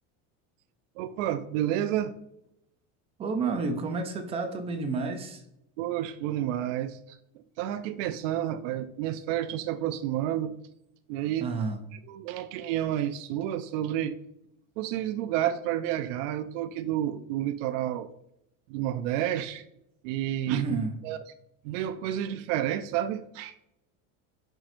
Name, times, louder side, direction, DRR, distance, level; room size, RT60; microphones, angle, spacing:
voice 1, 1.0-2.1 5.8-7.2 7.6-10.6 11.1-11.5 12.1-14.2 14.8-18.1 18.7-19.6 20.0-20.6 21.0-21.2 21.6-23.5, right 12 dB, 75° right, 10 dB, 0.5 m, -30 dB
voice 2, 3.2-5.4 11.4-11.8 20.5-20.9, right 4 dB, 15° right, 6 dB, 0.3 m, -30 dB
9.1 x 5.9 x 2.6 m, 0.81 s
cardioid pair, 170°, 38 cm